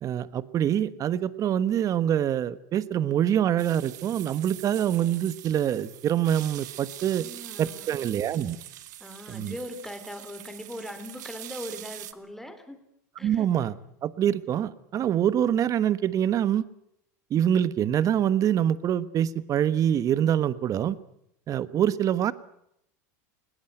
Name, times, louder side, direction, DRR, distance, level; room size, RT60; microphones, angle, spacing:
voice 1, 0.0-7.2 7.6-8.6 9.3-9.5 13.2-16.7 17.3-21.0 21.5-22.3, right 10 dB, 35° right, 16 dB, 1.3 m, -25 dB
sound 1, 3.6-12.1, right 14 dB, 85° right, 1.4 m, -43 dB
voice 2, 7.0-8.0 9.0-12.8 13.2-13.4, left 1 dB, 5° left, 8 dB, 3.6 m, -40 dB
21.0 x 18.0 x 9.2 m, 0.75 s
supercardioid pair, 115°, 9 cm